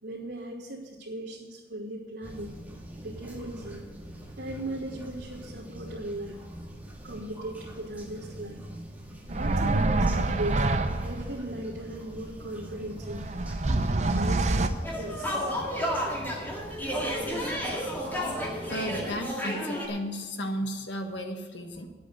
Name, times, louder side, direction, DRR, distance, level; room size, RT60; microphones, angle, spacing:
voice 1, 0.0-2.5 3.0-3.8 4.4-6.4 7.0-8.6 9.3-10.7 11.0-13.3 14.1-15.9, right 1 dB, 90° right, -8 dB, 2.6 m, -38 dB
sound 1, 2.2-19.2, right 1 dB, 10° right, 1.8 m, -44 dB
sound 2, 9.3-11.4 12.9-14.7, right 2 dB, 40° right, 0.6 m, -26 dB
sound 3, 14.8-19.9, equal, 10° left, 2.2 m, -31 dB
voice 2, 18.4-21.9, equal, 85° left, 4 dB, 1.5 m, -34 dB
10.0 x 8.3 x 8.1 m, 1.4 s
head